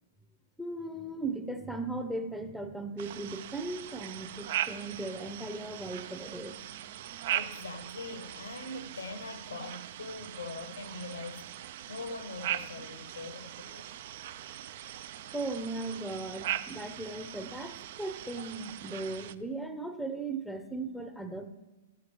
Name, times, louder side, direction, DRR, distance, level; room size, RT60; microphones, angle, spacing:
voice 1, 0.6-6.6 15.3-21.5, right 2 dB, ahead, 0.7 m, -37 dB
sound 1, 3.0-19.4, right 12 dB, 50° right, 0.3 m, -40 dB
voice 2, 7.3-11.6 11.9-13.9, left 2 dB, 75° left, 0.7 m, -42 dB
12.5 x 7.2 x 3.0 m
figure-of-eight pair, 110°, 0 cm